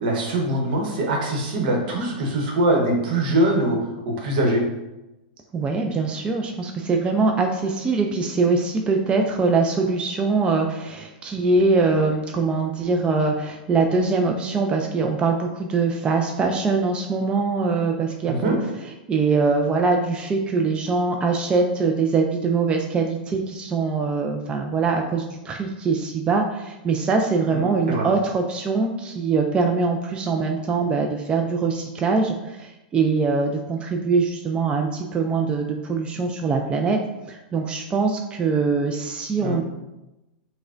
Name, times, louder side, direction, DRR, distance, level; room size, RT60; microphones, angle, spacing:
voice 1, 0.0-3.8 4.0-4.6 18.3-18.6 27.5-27.6 27.9-28.1 39.4-39.6, right 1 dB, 65° right, 1 dB, 0.9 m, -22 dB
voice 2, 5.5-18.5 19.1-37.0 37.3-39.6, right 4 dB, 20° right, 2 dB, 0.3 m, -23 dB
4.7 x 2.1 x 2.5 m, 0.98 s
hypercardioid pair, 115°, 5 cm